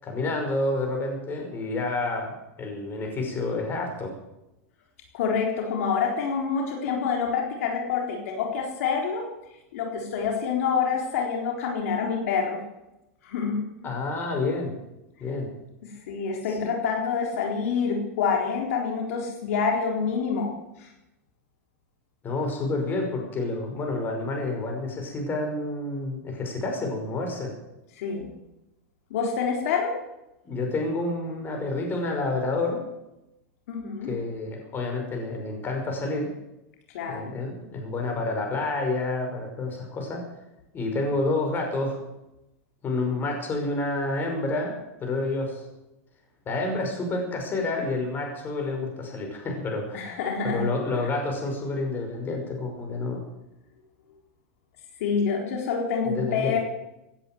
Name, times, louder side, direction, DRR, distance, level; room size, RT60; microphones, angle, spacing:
voice 1, 0.0-4.1 13.8-14.7 15.2-15.5 16.5-16.7 22.2-27.5 30.5-32.8 34.1-36.3 37.1-40.2 40.7-42.1 42.8-45.6 46.5-50.2 50.4-53.2 56.0-56.6, left 2 dB, 25° left, 2 dB, 5.8 m, -29 dB
voice 2, 5.1-9.3 9.7-12.6 13.2-13.9 15.8-20.5 20.8-20.9 28.0-28.3 29.1-30.0 33.7-34.1 36.9-37.3 49.9-50.7 51.0-51.1 55.0-56.6, left 6 dB, 70° left, 1 dB, 3.9 m, -27 dB
17.5 x 10.5 x 7.8 m, 0.92 s
hypercardioid pair, 125°, 8 cm